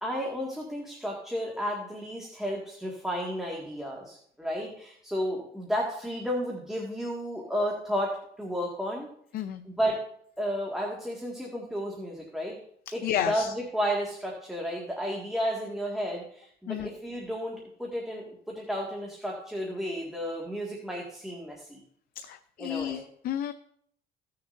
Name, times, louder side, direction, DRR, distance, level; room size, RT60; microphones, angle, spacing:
voice 1, 0.0-9.1 9.7-10.0 10.4-12.6 12.9-21.8 22.6-23.0, equal, ahead, -3 dB, 2.0 m, -32 dB
voice 2, 13.0-13.5 16.7-16.9 22.2-23.5, left 10 dB, 60° left, 9 dB, 0.5 m, -32 dB
17.0 x 6.7 x 2.7 m, 0.65 s
cardioid pair, 110°, 17 cm